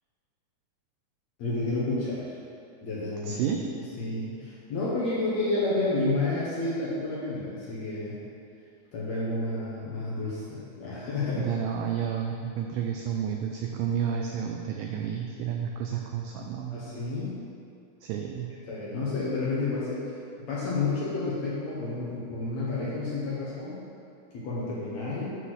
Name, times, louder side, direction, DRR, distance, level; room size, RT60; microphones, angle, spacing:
voice 1, 1.4-2.3 2.8-3.6 4.0-8.2 8.9-11.4 16.7-17.4 18.6-23.8 24.3-25.3, left 2 dB, 65° left, -7 dB, 1.9 m, -30 dB
voice 2, 3.2-3.6 11.4-16.8 18.0-18.5, right 8 dB, 85° right, 2 dB, 1.9 m, -31 dB
7.7 x 4.2 x 6.3 m, 2.4 s
omnidirectional pair, 4.3 m